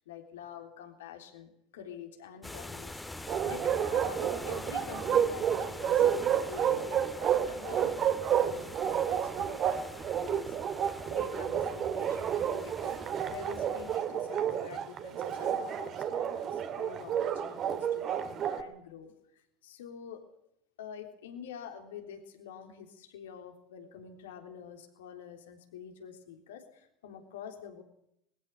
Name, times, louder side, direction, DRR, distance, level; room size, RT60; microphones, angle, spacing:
voice 1, 0.0-3.0 3.5-9.9 10.2-10.8 11.1-13.0 13.3-20.3 20.8-27.8, left 8 dB, 75° left, 5 dB, 3.5 m, -47 dB
sound 1, 2.4-14.0, left 2 dB, 10° left, 1.9 m, -45 dB
Bark, 3.3-18.6, right 9 dB, 45° right, 2.4 m, -30 dB
21.0 x 17.0 x 8.3 m, 0.75 s
hypercardioid pair, 80°, 0 cm